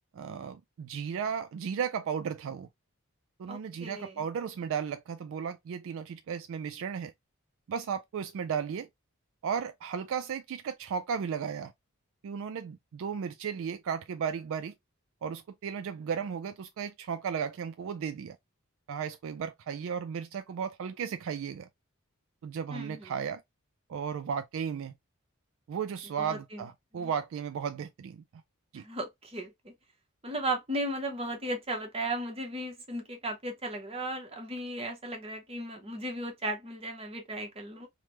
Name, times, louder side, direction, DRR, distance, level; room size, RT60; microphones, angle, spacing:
voice 1, 0.1-2.7 3.4-7.1 7.7-8.9 9.4-11.7 12.2-14.7 15.2-18.4 18.9-21.7 22.4-23.4 23.9-24.9 25.7-28.4 28.7-28.8, right 7 dB, 65° right, 0.3 m, -35 dB
voice 2, 3.5-4.2 22.7-23.1 26.2-26.6 26.9-27.1 28.8-29.7 30.2-37.9, right 1 dB, 25° right, 0.9 m, -36 dB
3.3 x 2.1 x 3.0 m
head